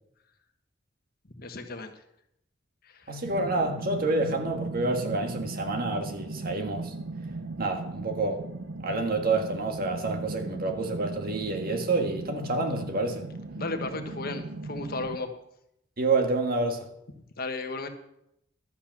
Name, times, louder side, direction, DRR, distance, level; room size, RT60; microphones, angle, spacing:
voice 1, 1.3-1.9 2.8-3.1 13.6-15.3 17.4-17.9, left 3 dB, 55° left, 6 dB, 1.2 m, -34 dB
voice 2, 3.1-6.9 7.6-8.4 8.8-13.2 16.0-16.9, right 3 dB, 50° right, 4 dB, 1.7 m, -28 dB
sound 1, 3.2-15.2, right 3 dB, 90° right, 0.7 m, -37 dB
12.0 x 8.4 x 5.9 m, 0.79 s
head